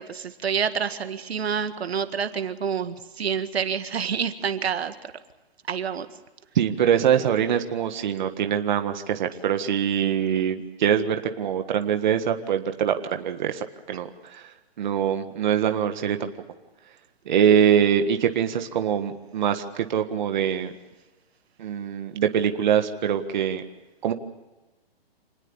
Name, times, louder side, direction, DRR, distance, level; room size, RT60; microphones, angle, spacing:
voice 1, 0.0-5.0 5.7-6.1, right 7 dB, 85° right, 9 dB, 1.9 m, -28 dB
voice 2, 6.5-14.4 14.8-16.3 17.2-20.7 21.6-23.6 24.0-24.1, right 8 dB, 50° right, 7 dB, 1.7 m, -23 dB
27.0 x 20.0 x 7.2 m, 1.1 s
hypercardioid pair, 165°, 30 cm